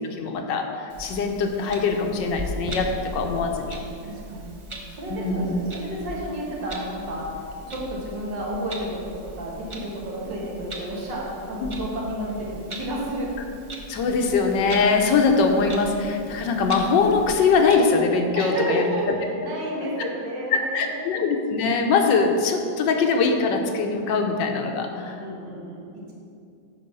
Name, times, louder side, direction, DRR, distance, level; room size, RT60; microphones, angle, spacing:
voice 1, 0.2-3.8 5.1-5.5 11.6-11.7 13.9-18.9 20.0-20.1 20.7-25.2, left 4 dB, 80° left, 4 dB, 1.5 m, -22 dB
Clock, 0.9-17.8, equal, 45° right, 0.4 m, -39 dB
voice 2, 4.0-4.5 4.9-7.3 7.7-13.3 18.3-19.1 19.4-21.2 24.9-26.1, right 1 dB, 85° right, -4 dB, 2.4 m, -31 dB
9.3 x 4.1 x 6.7 m, 2.5 s
omnidirectional pair, 1.9 m